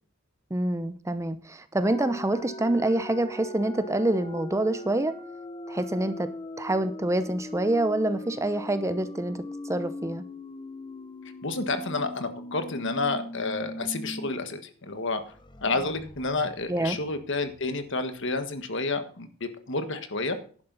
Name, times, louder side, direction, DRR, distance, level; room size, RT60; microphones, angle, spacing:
voice 1, 0.5-5.1 5.7-6.3 6.6-10.3 16.7-17.0, right 1 dB, 15° right, 11 dB, 0.7 m, -26 dB
sound 1, 1.8-14.3 14.6-14.7 15.1-17.8, left 1 dB, 20° left, 0.8 m, -40 dB
voice 2, 11.4-15.2 15.6-20.4, left 3 dB, 65° left, 9 dB, 1.5 m, -30 dB
11.0 x 11.0 x 4.0 m, 0.43 s
head